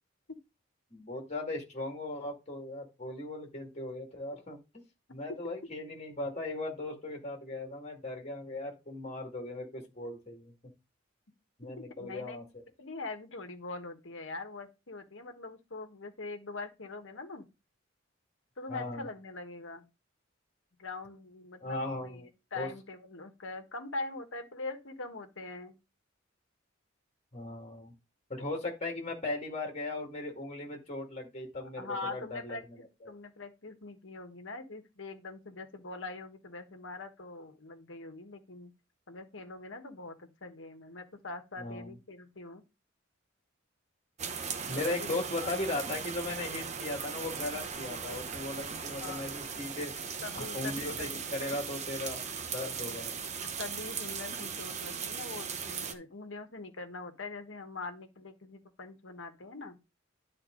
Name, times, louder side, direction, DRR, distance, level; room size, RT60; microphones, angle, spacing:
voice 1, 0.9-4.6 5.1-10.5 11.6-12.4 18.7-19.1 21.6-22.3 22.5-22.7 27.3-27.9 28.3-32.6 33.0-33.1 41.6-42.0 44.7-49.9 50.3-52.2 52.5-53.3, left 2 dB, 35° left, 2.2 m, -38 dB
voice 2, 12.0-12.4 12.8-17.4 18.6-19.9 20.8-25.7 31.6-38.7 39.1-42.6 44.7-45.2 45.4-45.5 49.0-49.2 50.2-51.2 53.6-59.8, left 3 dB, 75° left, 1.3 m, -43 dB
sound 1, 44.2-55.9, right 6 dB, 35° right, 0.8 m, -38 dB
10.5 x 4.3 x 3.8 m
head